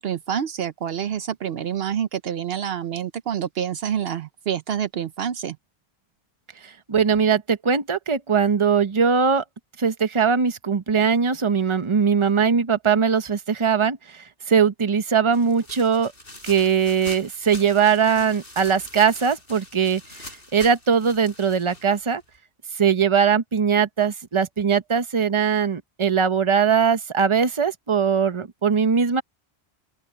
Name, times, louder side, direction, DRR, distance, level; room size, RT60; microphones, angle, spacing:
voice 1, 0.0-5.6, right 9 dB, 70° right, 0.9 m, -27 dB
voice 2, 6.9-9.4 9.8-14.0 14.5-16.1 16.4-20.0 20.5-22.2 22.8-29.2, right 6 dB, 30° right, 0.9 m, -20 dB
sound 1, 15.3-22.4, left 1 dB, 60° left, 5.7 m, -43 dB
open air
omnidirectional pair, 1.1 m